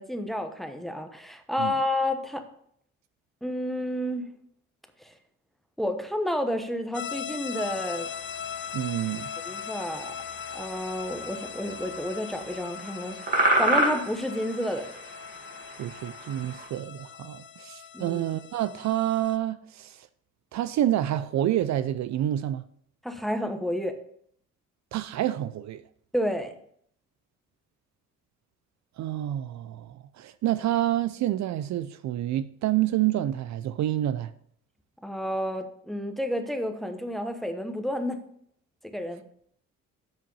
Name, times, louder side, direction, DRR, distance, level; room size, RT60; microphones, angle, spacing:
voice 1, 0.0-2.4 3.4-4.3 5.0-5.1 5.8-8.1 9.4-10.1 10.5-14.9 17.9-18.2 23.0-23.9 26.1-26.5 35.0-38.2 38.8-39.2, left 1 dB, ahead, 1.1 m, -30 dB
sound 1, 6.9-19.4, left 8 dB, 40° left, 0.6 m, -40 dB
sound 2, 7.5-16.7, right 1 dB, 30° right, 2.1 m, -32 dB
voice 2, 8.7-9.3 15.8-20.1 20.5-22.6 24.9-25.8 29.0-34.3, right 12 dB, 65° right, 0.5 m, -28 dB
7.5 x 5.5 x 5.5 m
cardioid pair, 90°, 30 cm